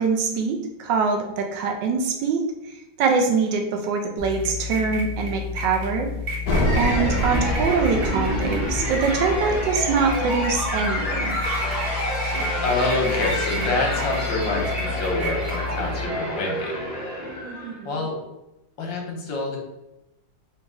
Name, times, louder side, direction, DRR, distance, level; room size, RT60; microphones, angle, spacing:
voice 1, 0.0-6.1 6.8-11.4 17.4-18.1, right 5 dB, 75° right, 3 dB, 1.2 m, -24 dB
sound 1, 4.2-16.0, left 3 dB, 50° right, 1.4 m, -31 dB
sound 2, 6.5-11.8, equal, 60° left, 1.2 m, -27 dB
sound 3, 6.7-17.8, equal, 30° left, 1.2 m, -29 dB
voice 2, 12.6-16.8 17.8-18.2 18.8-19.6, left 2 dB, 80° left, 0 dB, 1.7 m, -26 dB
4.0 x 2.8 x 3.6 m, 0.93 s
omnidirectional pair, 2.0 m